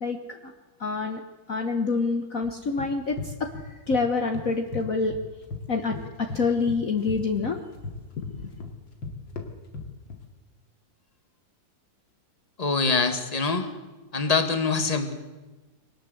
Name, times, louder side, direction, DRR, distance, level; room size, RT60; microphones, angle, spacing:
voice 1, 0.0-0.5 0.8-1.2 1.5-5.1 5.7-7.6 8.2-8.5, left 4 dB, 50° left, 5 dB, 1.5 m, -27 dB
sound 1, 2.4-4.0 4.3-5.6 5.9-10.2, left 3 dB, 90° left, 3.2 m, -37 dB
voice 2, 12.6-13.7 14.1-15.1, left 4 dB, 20° left, 8 dB, 1.8 m, -24 dB
23.0 x 19.0 x 7.8 m, 1.2 s
omnidirectional pair, 2.0 m